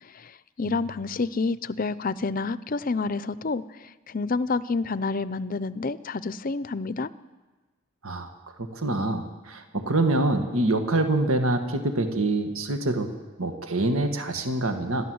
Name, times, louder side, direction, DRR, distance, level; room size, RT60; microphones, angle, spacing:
voice 1, 0.0-7.1, left 3 dB, 40° left, 16 dB, 0.6 m, -29 dB
voice 2, 8.6-13.1 13.4-15.0, right 2 dB, 85° right, 6 dB, 1.9 m, -25 dB
28.5 x 12.0 x 7.9 m, 1.3 s
head